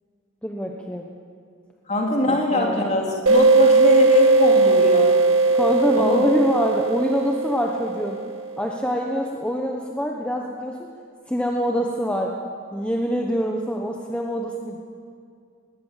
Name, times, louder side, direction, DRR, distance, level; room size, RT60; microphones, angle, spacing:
voice 1, 0.4-1.1 2.3-2.8 5.5-8.2 8.6-10.9 11.3-12.3 12.7-14.8, equal, 5° left, 1 dB, 1.1 m, -25 dB
voice 2, 1.9-5.2 6.0-6.2, left 1 dB, 35° left, 0 dB, 3.2 m, -22 dB
sound 1, 3.3-8.6, right 3 dB, 85° right, 1.8 m, -18 dB
20.0 x 18.0 x 7.4 m, 2.3 s
head